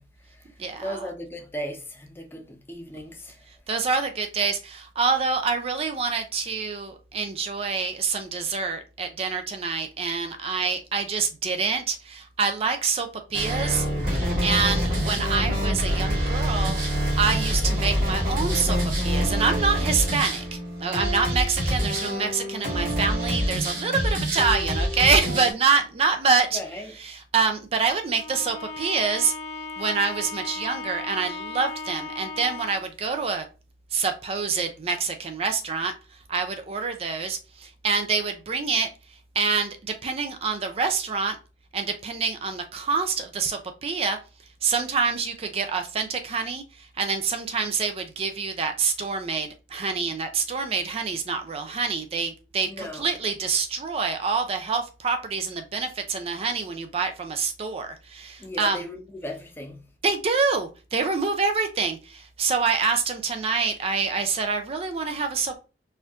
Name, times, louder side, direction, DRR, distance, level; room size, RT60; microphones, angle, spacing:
voice 1, 0.0-3.5 26.5-26.9 52.7-53.1 58.4-59.9, equal, 15° left, 0.6 m, -37 dB
voice 2, 0.6-1.1 3.7-16.8 17.1-26.6 27.0-29.3 29.8-33.5 33.9-35.9 36.3-38.9 39.3-41.4 41.7-44.2 44.6-58.8 60.0-65.6, right 5 dB, 35° right, 0.4 m, -26 dB
sound 1, 13.3-25.5, equal, 50° right, 1.4 m, -26 dB
Bowed string instrument, 28.1-33.0, left 3 dB, 75° left, 0.7 m, -36 dB
4.3 x 2.5 x 2.3 m
head